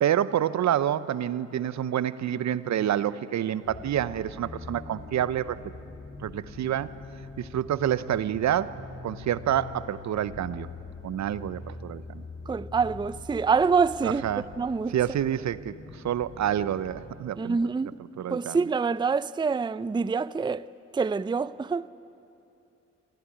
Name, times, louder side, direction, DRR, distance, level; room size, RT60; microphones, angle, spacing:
voice 1, 0.0-5.6 6.2-6.9 7.4-10.7 11.0-12.2 14.0-14.5 14.9-15.7 16.0-17.6 18.0-18.6, right 10 dB, 70° right, 0.8 m, -28 dB
sound 1, 3.6-17.2, left 3 dB, 35° left, 2.5 m, -43 dB
voice 2, 12.5-14.2 14.6-14.9 17.4-17.9 18.3-20.6 20.9-21.9, right 5 dB, 15° right, 0.5 m, -26 dB
26.0 x 15.0 x 10.0 m
cardioid pair, 65°, 29 cm